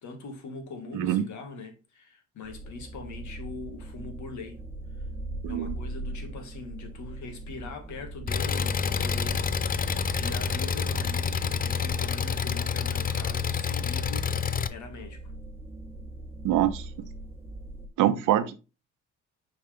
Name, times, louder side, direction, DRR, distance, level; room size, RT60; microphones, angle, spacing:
voice 1, 0.0-4.6 5.5-14.3 14.7-15.2, left 3 dB, 70° left, 1.9 m, -42 dB
voice 2, 0.9-1.2 5.4-5.7 16.4-16.8 18.0-18.5, right 12 dB, 85° right, 0.9 m, -24 dB
sound 1, 2.4-17.9, right 2 dB, 10° right, 1.5 m, -40 dB
Engine, 8.3-14.7, left 6 dB, 30° left, 0.5 m, -28 dB
6.8 x 4.9 x 3.4 m
cardioid pair, 90°, 30 cm